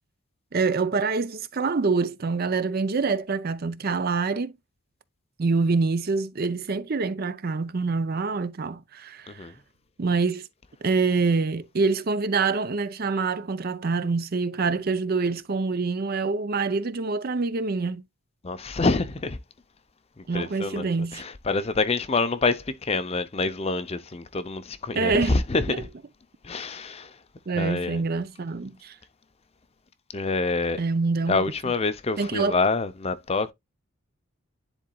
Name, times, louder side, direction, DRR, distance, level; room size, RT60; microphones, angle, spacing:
voice 1, 0.5-4.5 5.4-9.4 10.0-10.5 10.8-18.0 20.3-21.2 24.9-25.4 25.7-25.8 27.5-28.9 30.8-31.7 32.2-32.6, right 4 dB, 45° right, 0.5 m, -26 dB
voice 2, 18.4-19.4 20.3-20.9 21.5-25.9 26.4-27.1 27.6-28.0 30.1-30.8 31.3-33.5, left 3 dB, 30° left, 0.6 m, -26 dB
10.5 x 4.0 x 2.3 m
head